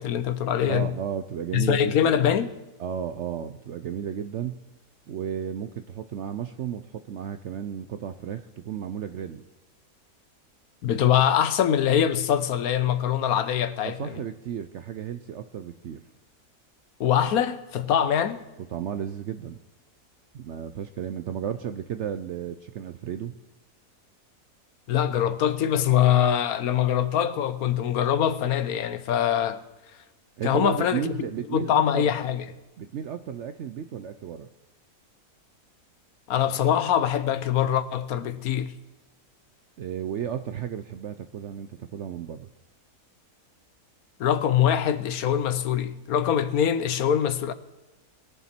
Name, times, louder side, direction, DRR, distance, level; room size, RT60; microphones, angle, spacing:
voice 1, 0.0-0.9 1.5-2.5 10.8-14.2 17.0-18.4 24.9-29.6 30.4-31.1 31.5-32.4 36.3-38.7 44.2-47.5, left 9 dB, 70° left, 1.2 m, -23 dB
voice 2, 0.6-2.3 2.8-4.6 5.1-9.4 13.8-16.0 18.7-19.6 20.3-23.3 30.4-32.1 32.8-34.5 39.8-42.5, right 9 dB, 65° right, 0.7 m, -33 dB
21.0 x 7.2 x 4.4 m
omnidirectional pair, 1.7 m